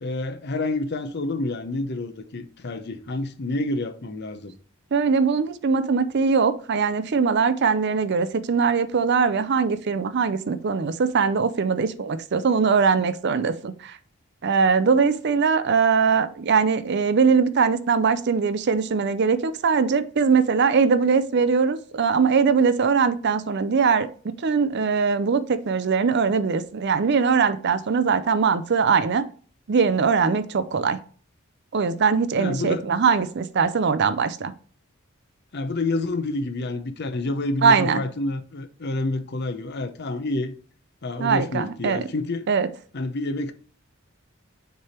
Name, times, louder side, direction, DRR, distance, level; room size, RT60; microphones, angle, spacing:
voice 1, 0.0-4.5 32.4-32.8 35.5-40.5 41.0-42.5 42.9-43.5, left 2 dB, 50° left, 0.7 m, -28 dB
voice 2, 4.9-14.0 14.4-24.1 24.4-29.3 29.7-31.0 31.7-34.5 37.6-38.0 41.2-42.1 42.5-42.7, right 5 dB, 55° right, 0.5 m, -21 dB
6.7 x 3.4 x 4.3 m
head